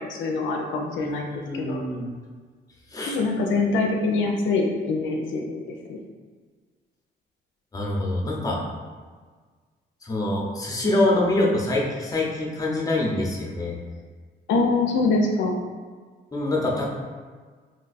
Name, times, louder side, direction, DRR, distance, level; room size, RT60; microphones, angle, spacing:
voice 1, 0.1-1.8 3.1-6.0 14.5-15.6, left 3 dB, 75° left, 1 dB, 0.4 m, -24 dB
voice 2, 1.0-2.1 2.9-3.2 7.7-8.6 10.0-13.7 16.3-16.9, left 1 dB, 15° left, -2 dB, 0.7 m, -25 dB
2.5 x 2.3 x 3.9 m, 1.5 s
cardioid pair, 90°, 20 cm